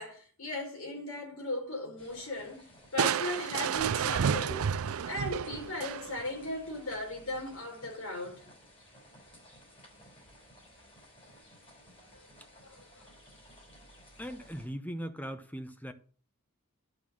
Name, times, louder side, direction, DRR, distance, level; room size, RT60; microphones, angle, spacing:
voice 1, 0.0-4.7 5.0-8.4 12.1-12.3 12.6-13.1, left 1 dB, 70° left, 4.6 m, -37 dB
sound 1, 2.0-14.7, equal, 25° left, 4.4 m, -56 dB
Crushing, 3.0-6.4, right 7 dB, 70° right, 0.4 m, -31 dB
voice 2, 14.2-15.9, equal, 5° left, 0.9 m, -39 dB
11.5 x 5.6 x 6.3 m
head